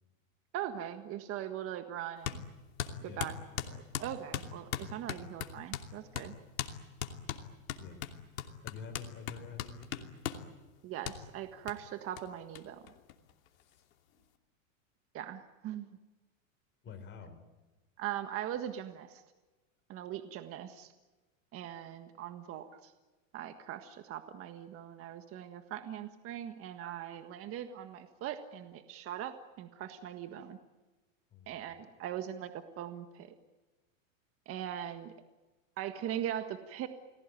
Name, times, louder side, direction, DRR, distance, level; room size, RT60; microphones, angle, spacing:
voice 1, 0.5-2.4 3.0-3.4 3.7-6.4 10.8-12.8 15.1-15.9 18.0-19.2 19.9-20.9 21.5-22.9 23.3-30.6 31.5-33.3 34.5-35.1 35.8-36.9, right 11 dB, 35° right, 8 dB, 1.6 m, -40 dB
sound 1, 2.2-2.4 2.8-5.9 6.1-6.3 6.6-6.7 7.0-10.5 11.0-11.2 11.7-11.8 12.2-12.3 12.5-12.6 12.9-13.6, left 10 dB, 85° left, 2.9 m, -38 dB
voice 2, 3.0-3.6 7.8-8.1 8.6-10.2 13.5-14.2 16.8-17.4 31.3-31.8, left 5 dB, 30° left, 6 dB, 4.1 m, -49 dB
29.5 x 20.0 x 9.1 m, 1.2 s
supercardioid pair, 140°, 40 cm